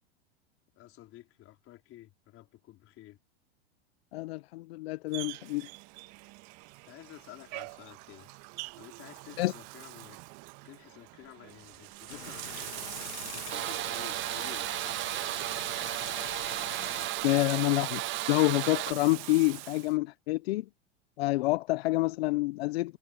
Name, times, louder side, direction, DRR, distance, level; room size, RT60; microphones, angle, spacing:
voice 1, 0.7-3.2 6.8-8.3 8.8-10.2 10.6-12.7 13.2-14.7, left 15 dB, 40° left, 4.7 m, -51 dB
voice 2, 4.1-5.7 9.4-9.5 16.8-16.9 17.2-18.0 18.3-20.7 21.2-23.0, left 20 dB, 65° left, 1.0 m, -28 dB
Bathtub (filling or washing), 5.1-19.9, right 24 dB, 50° right, 1.9 m, -42 dB
sound 1, 12.1-17.1, left 11 dB, 85° left, 1.3 m, -45 dB
sound 2, 13.5-18.9, right 16 dB, 35° right, 0.9 m, -35 dB
hypercardioid pair, 105°, 33 cm